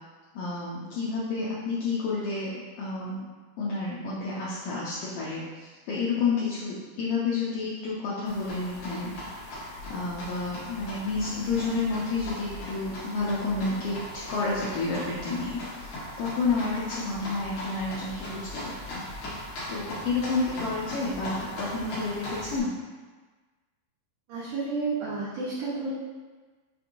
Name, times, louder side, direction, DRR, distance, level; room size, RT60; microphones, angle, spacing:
voice 1, 0.3-3.3 3.6-9.1 9.5-19.0 19.7-22.7, left 3 dB, 85° left, -7 dB, 1.9 m, -30 dB
sound 1, 8.3-22.6, left 1 dB, 70° left, 1.7 m, -39 dB
voice 2, 24.3-25.9, right 4 dB, 70° right, -10 dB, 2.2 m, -31 dB
6.1 x 2.8 x 2.6 m, 1.4 s
omnidirectional pair, 4.6 m